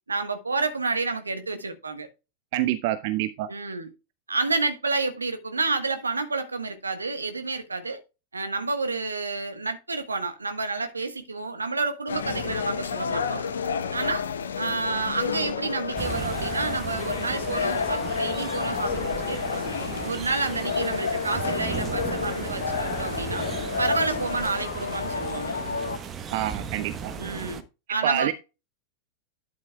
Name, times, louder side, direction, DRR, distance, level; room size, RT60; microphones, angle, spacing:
voice 1, 0.1-2.1 3.5-3.9 4.3-8.0 8.3-13.4 13.9-14.3 14.6-19.7 20.0-23.5 23.8-25.5 27.2-27.6 27.9-28.3, right 3 dB, 80° right, 1.3 m, -29 dB
voice 2, 2.5-3.5 26.3-27.1 28.0-28.3, right 14 dB, 50° right, 0.6 m, -27 dB
sound 1, 12.1-26.0, left 6 dB, 70° left, 0.8 m, -30 dB
sound 2, 16.0-27.6, right 7 dB, 25° right, 1.1 m, -36 dB
11.5 x 7.5 x 2.3 m
figure-of-eight pair, 90°, 0 cm